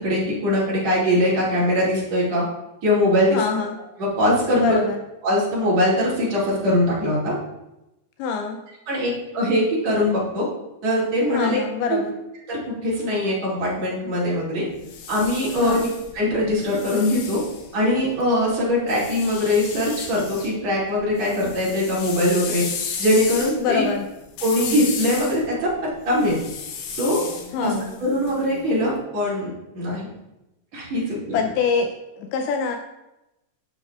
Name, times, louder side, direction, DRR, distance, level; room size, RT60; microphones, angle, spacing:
voice 1, 0.0-2.4 2.8-3.4 4.0-4.8 5.2-7.3 8.9-10.4 10.8-11.6 11.9-12.0 12.5-14.7 15.1-15.9 16.1-17.4 17.7-22.6 23.0-23.8 24.4-26.4 26.9-27.2 27.6-27.7 28.0-30.1 30.7-31.4, left 1 dB, 45° right, -7 dB, 3.1 m, -22 dB
voice 2, 3.3-3.8 4.6-5.0 8.2-8.6 11.3-12.1 15.6-15.9 23.6-24.1 27.5-27.9 31.3-32.8, left 5 dB, 90° left, 4 dB, 2.3 m, -25 dB
sound 1, 14.7-18.2 18.9-20.5 20.9-28.8, left 6 dB, 70° left, 2.4 m, -34 dB
12.5 x 6.3 x 2.4 m, 0.94 s
omnidirectional pair, 5.1 m